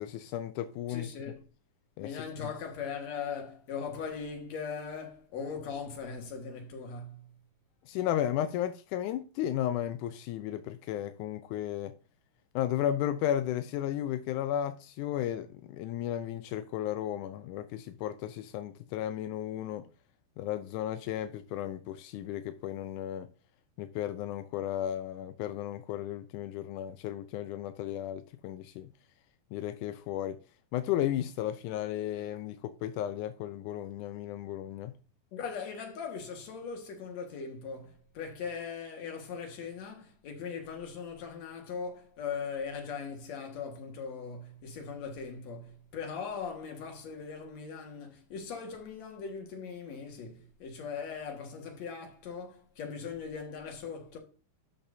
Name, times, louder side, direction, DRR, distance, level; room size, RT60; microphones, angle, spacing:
voice 1, 0.0-1.1 2.0-2.1 2.4-2.5 7.9-11.9 12.6-19.9 20.4-23.3 23.8-28.9 29.5-30.4 30.7-34.9, left 11 dB, 80° left, 1.8 m, -34 dB
voice 2, 0.9-1.4 2.0-7.3 35.3-54.2, left 6 dB, 55° left, 2.7 m, -40 dB
12.0 x 7.2 x 2.7 m
omnidirectional pair, 4.2 m